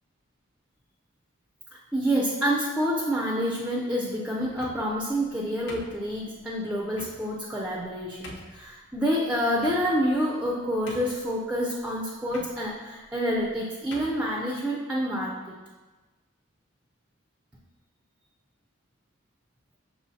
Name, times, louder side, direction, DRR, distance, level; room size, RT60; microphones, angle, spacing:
voice 1, 1.7-15.5, equal, 5° right, -3 dB, 0.3 m, -28 dB
sound 1, 4.4-5.0 5.7-6.4 6.9-7.2 7.8-7.9 8.2-8.6 9.6-10.1 10.5-10.6 10.9-11.3 12.3-12.5 13.4-13.5 13.9-14.2, left 1 dB, 60° left, 0.6 m, -43 dB
6.3 x 3.0 x 2.7 m, 1.3 s
head